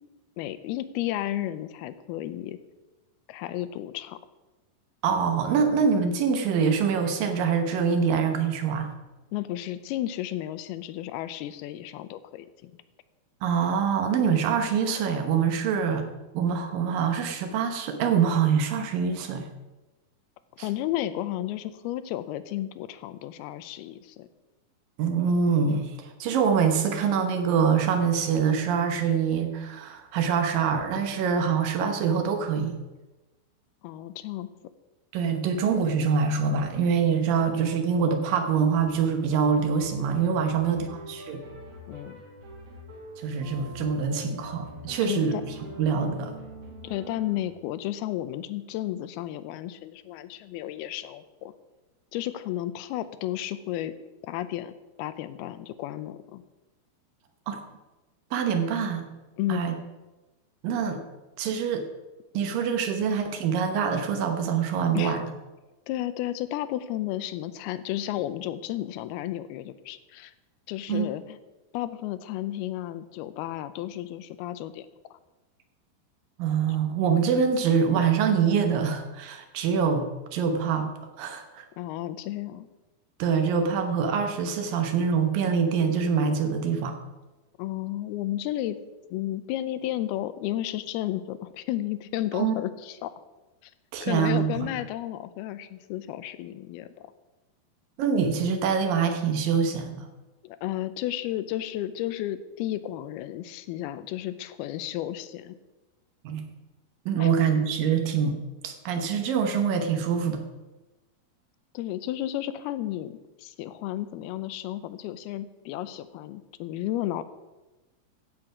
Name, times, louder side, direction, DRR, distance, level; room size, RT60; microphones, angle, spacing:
voice 1, 0.4-2.6 3.3-4.2 9.3-12.7 20.6-24.3 33.8-34.5 40.5-41.0 41.9-42.2 45.0-45.4 46.8-51.5 52.1-53.9 54.2-54.7 55.0-56.4 59.4-59.6 64.9-65.2 65.9-70.3 70.7-71.4 71.7-75.2 81.8-82.7 87.6-88.8 89.1-93.1 93.6-93.7 94.0-97.1 100.4-105.6 107.2-107.3 111.7-117.2, left 13 dB, 85° left, 13 dB, 2.6 m, -33 dB
voice 2, 5.0-8.9 13.4-16.1 16.3-19.5 25.0-32.7 35.1-41.4 43.2-45.4 45.8-46.3 57.5-57.6 58.3-59.0 59.5-59.7 60.6-61.0 61.4-61.8 62.3-65.2 70.9-71.1 76.4-80.9 81.2-81.6 83.2-86.9 92.3-92.5 93.9-94.7 98.0-100.1 106.2-106.4 107.1-108.4 108.6-110.4, right 6 dB, 70° right, 6 dB, 2.6 m, -25 dB
sound 1, 38.7-47.4, right 1 dB, 45° right, 2.4 m, -44 dB
15.0 x 7.9 x 4.9 m, 1.1 s
omnidirectional pair, 4.5 m